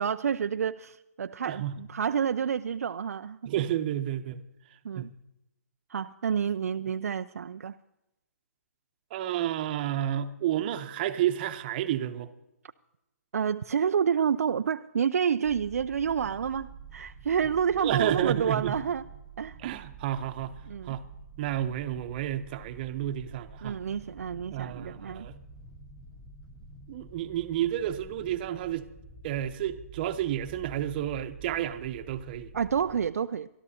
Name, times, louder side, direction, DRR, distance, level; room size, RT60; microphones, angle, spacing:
voice 1, 0.0-3.6 4.8-5.1 5.9-7.7 13.3-19.1 19.4-19.6 20.7-21.0 23.6-25.3 32.5-33.5, right 7 dB, 65° right, 0.4 m, -29 dB
voice 2, 1.5-1.8 3.5-4.4 4.9-5.1 9.1-12.3 17.8-18.7 19.6-20.5 20.8-21.0 21.4-23.8 24.5-25.4 26.9-28.9 29.2-32.5, right 12 dB, 35° right, 0.9 m, -30 dB
sound 1, 15.4-33.1, right 3 dB, 5° left, 1.4 m, -48 dB
23.0 x 13.0 x 2.9 m
hypercardioid pair, 140°, 9 cm